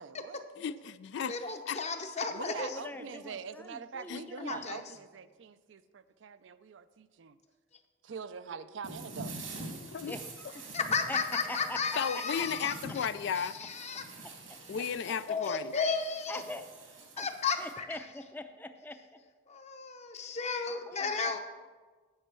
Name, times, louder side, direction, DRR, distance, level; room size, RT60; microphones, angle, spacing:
voice 1, 0.0-0.5 2.3-7.4 8.0-9.4, right 6 dB, 65° right, 13 dB, 0.4 m, -44 dB
voice 2, 0.6-1.4 1.7-1.8 4.1-4.2 9.8-10.1 12.0-13.6 14.7-15.7, left 7 dB, 60° left, 14 dB, 0.3 m, -34 dB
voice 3, 1.3-2.8 4.4-4.8 10.7-13.1 13.4-14.1 15.3-16.4 17.2-18.0 19.5-21.4, left 5 dB, 35° left, 6 dB, 0.8 m, -34 dB
voice 4, 2.4-4.7 10.1-10.7 11.1-11.2 11.5-12.4 14.2-14.3 16.3-16.7 16.9-17.3 17.6-19.2 20.2-20.3 20.9-21.1, left 2 dB, 10° left, 8 dB, 0.5 m, -43 dB
sound 1, 8.8-17.7, right 2 dB, 85° right, 2.1 m, -46 dB
9.6 x 5.4 x 7.5 m, 1.4 s
head